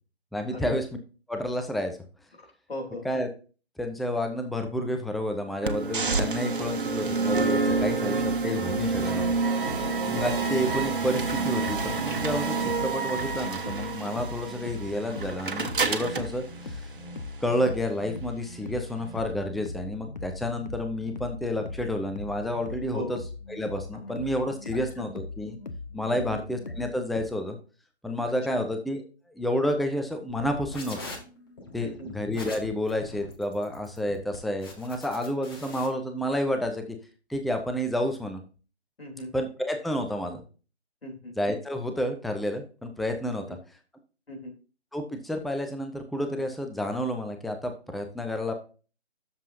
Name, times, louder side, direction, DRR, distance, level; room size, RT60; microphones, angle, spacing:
voice 1, 0.3-0.9 1.3-2.0 3.0-3.3 3.8-9.4 10.1-16.9 17.4-23.2 23.5-25.6 25.9-27.6 28.0-29.0 29.4-31.0 31.7-37.0 37.3-38.4 39.3-40.4 41.4-43.4 44.9-48.5, left 1 dB, ahead, 5 dB, 0.4 m, -30 dB
voice 2, 2.7-3.0 9.6-9.9 22.9-23.1 25.0-25.1 26.1-26.4 28.2-28.6 31.8-32.1 39.0-39.3 41.0-41.3 44.3-44.5, left 1 dB, 60° left, 2 dB, 3.3 m, -38 dB
sound 1, 5.6-17.6, right 4 dB, 50° right, 1.2 m, -28 dB
sound 2, 7.3-27.3, left 3 dB, 40° left, 0.8 m, -40 dB
sound 3, 30.3-35.9, left 2 dB, 20° left, 1.3 m, -43 dB
11.5 x 7.2 x 2.6 m, 0.35 s
figure-of-eight pair, 155°, 34 cm